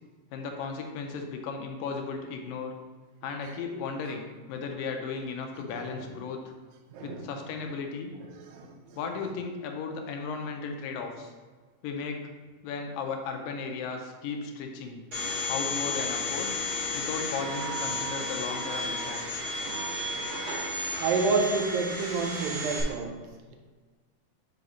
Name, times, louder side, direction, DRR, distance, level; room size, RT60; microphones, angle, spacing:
voice 1, 0.3-2.7 3.2-6.5 7.0-8.1 9.0-11.3 11.8-12.2 12.6-15.0 15.5-16.6 16.9-19.2, left 5 dB, 85° left, 3 dB, 2.4 m, -35 dB
voice 2, 6.9-7.3 8.5-8.7 19.7-20.7 21.0-23.2, right 4 dB, 85° right, 3 dB, 2.5 m, -30 dB
Domestic sounds home sounds, 15.1-22.8, left 2 dB, 35° right, 2.3 m, -33 dB
8.3 x 4.9 x 3.1 m, 1.4 s
omnidirectional pair, 4.0 m